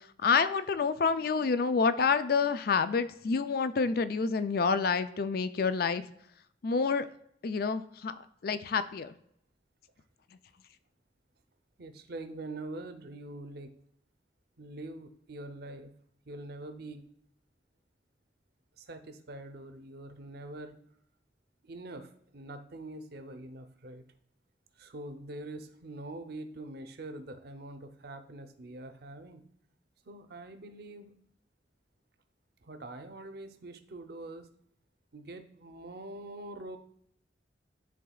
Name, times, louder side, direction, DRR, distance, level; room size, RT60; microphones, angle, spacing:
voice 1, 0.2-6.0 6.6-7.1 7.4-8.1 8.4-9.1, left 5 dB, 60° left, 12 dB, 0.4 m, -28 dB
voice 2, 11.8-13.7 14.6-15.9 16.3-17.1 18.8-20.8 21.6-24.0 24.8-29.4 30.1-31.2 32.6-34.5 35.1-36.8, right 2 dB, 60° right, 8 dB, 0.7 m, -44 dB
11.0 x 3.8 x 2.3 m, 0.71 s
head